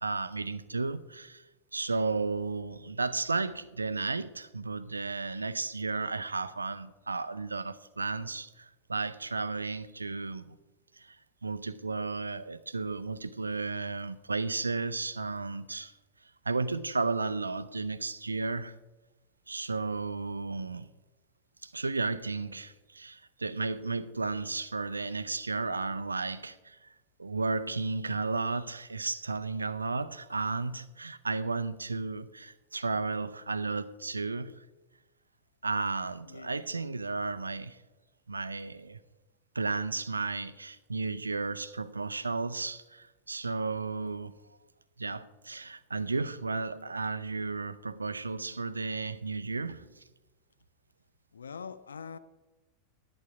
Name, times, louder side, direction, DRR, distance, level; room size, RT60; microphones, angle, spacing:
voice 1, 0.0-1.4 1.7-10.6 11.0-11.2 11.4-15.9 16.5-18.8 19.5-20.9 21.6-26.9 27.2-34.6 35.6-37.8 38.3-39.0 39.5-44.3 45.0-50.0, right 3 dB, 80° right, 0.5 m, -33 dB
voice 2, 36.2-36.5 51.3-52.2, left 6 dB, 70° left, 0.4 m, -43 dB
11.0 x 7.8 x 4.9 m
figure-of-eight pair, 90°, 0 cm